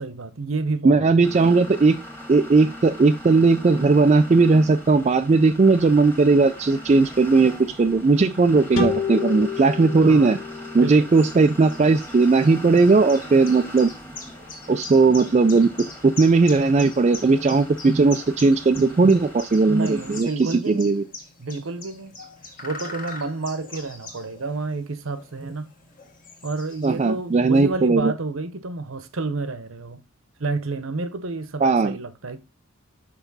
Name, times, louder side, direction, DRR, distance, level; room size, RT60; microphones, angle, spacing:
voice 1, 0.0-1.4 10.0-10.3 10.7-11.1 19.7-20.9 21.4-22.1 22.6-25.7 26.4-30.0 30.4-32.4, right 3 dB, 70° right, 0.8 m, -30 dB
voice 2, 0.8-2.0 2.3-10.4 10.7-13.9 14.7-21.0 26.8-28.1 31.6-32.0, right 3 dB, 30° right, 0.3 m, -18 dB
sound 1, 1.2-20.2, equal, 10° left, 1.5 m, -40 dB
sound 2, 8.7-12.1, left 5 dB, 80° left, 2.1 m, -30 dB
sound 3, 10.7-27.3, left 3 dB, 40° left, 1.6 m, -42 dB
5.8 x 5.5 x 4.0 m
head